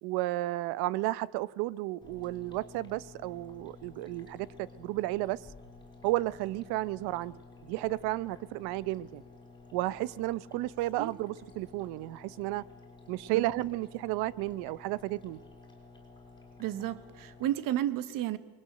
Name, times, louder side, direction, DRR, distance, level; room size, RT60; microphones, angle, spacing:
voice 1, 0.0-5.4 6.0-7.4 7.6-9.2 9.7-12.7 13.1-15.4, right 17 dB, 85° right, 21 dB, 0.9 m, -33 dB
sound 1, 2.0-17.5, left 3 dB, 10° left, 5.7 m, -53 dB
voice 2, 16.6-18.4, right 12 dB, 60° right, 15 dB, 1.3 m, -32 dB
28.0 x 21.5 x 7.8 m, 1.3 s
cardioid pair, 165°, 38 cm